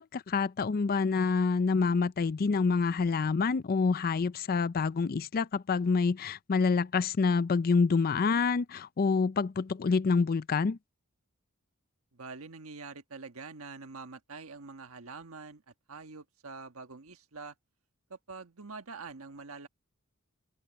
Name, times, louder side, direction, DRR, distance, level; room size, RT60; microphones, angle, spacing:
voice 1, 0.0-10.8, left 4 dB, 40° left, 0.4 m, -27 dB
voice 2, 12.1-15.6 15.9-17.5 18.1-19.7, right 4 dB, 65° right, 1.4 m, -45 dB
open air
head